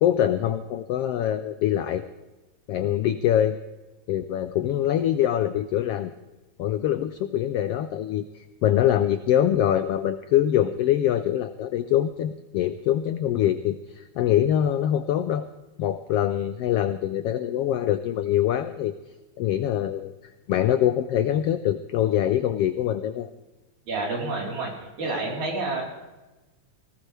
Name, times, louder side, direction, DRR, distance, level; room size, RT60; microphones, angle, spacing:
voice 1, 0.0-2.0 2.7-3.6 4.1-6.1 6.6-15.5 15.8-18.9 19.4-20.1 20.5-23.3, left 11 dB, 85° left, 10 dB, 1.3 m, -24 dB
voice 2, 23.9-24.7 25.0-25.8, right 3 dB, 75° right, -2 dB, 5.5 m, -28 dB
19.0 x 18.0 x 3.4 m, 1.1 s
omnidirectional pair, 3.4 m